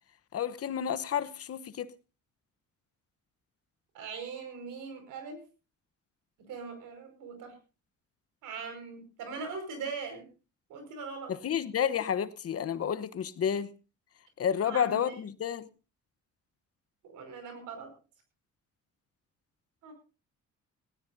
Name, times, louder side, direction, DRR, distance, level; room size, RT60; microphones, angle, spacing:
voice 1, 0.3-1.9 11.3-13.7 14.4-15.6, left 8 dB, 50° left, 1.0 m, -30 dB
voice 2, 3.9-5.4 6.4-7.6 8.4-10.3 10.7-11.3 14.6-15.2 17.1-17.9 19.8-19.9, right 5 dB, 90° right, 5.3 m, -41 dB
18.5 x 17.5 x 2.7 m
cardioid pair, 90°, 30 cm